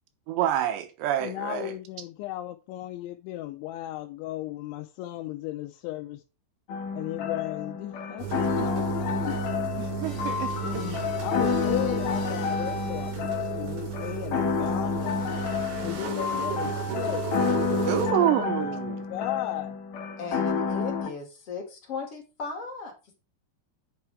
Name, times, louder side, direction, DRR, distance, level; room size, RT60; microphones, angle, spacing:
voice 1, 0.3-1.7 8.6-8.7 9.8-10.8 17.9-19.0, right 11 dB, 80° right, 2.9 m, -27 dB
voice 2, 1.2-6.2 7.0-9.4 10.6-15.2 15.8-17.3 17.8-19.8, left 15 dB, 85° left, 3.0 m, -36 dB
sound 1, 6.7-21.1, left 6 dB, 65° left, 2.3 m, -30 dB
sound 2, 8.2-18.1, right 8 dB, 60° right, 2.3 m, -34 dB
sound 3, 10.0-13.4, left 4 dB, 25° left, 1.4 m, -41 dB
voice 3, 20.2-23.1, left 4 dB, 45° left, 2.3 m, -37 dB
8.7 x 5.8 x 4.6 m
omnidirectional pair, 5.3 m